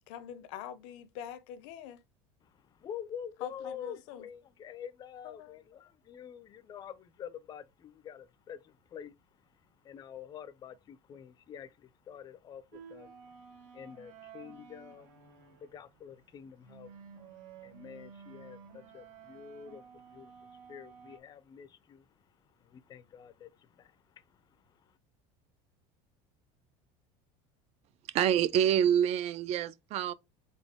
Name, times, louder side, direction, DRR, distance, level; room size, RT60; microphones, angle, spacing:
voice 1, 0.1-2.0 3.4-4.3 5.2-5.7, left 9 dB, 80° left, 0.7 m, -44 dB
voice 2, 2.8-9.1 9.8-12.6 12.9-13.1 13.7-16.9 17.6-19.8 20.1-20.3 20.7-22.0 22.7-23.5 23.8-23.9, left 8 dB, 25° left, 0.4 m, -47 dB
sound 1, 12.7-21.2, right 7 dB, 75° right, 1.3 m, -53 dB
voice 3, 28.1-30.1, right 9 dB, 45° right, 0.4 m, -26 dB
4.1 x 3.7 x 3.5 m
cardioid pair, 150°, 16 cm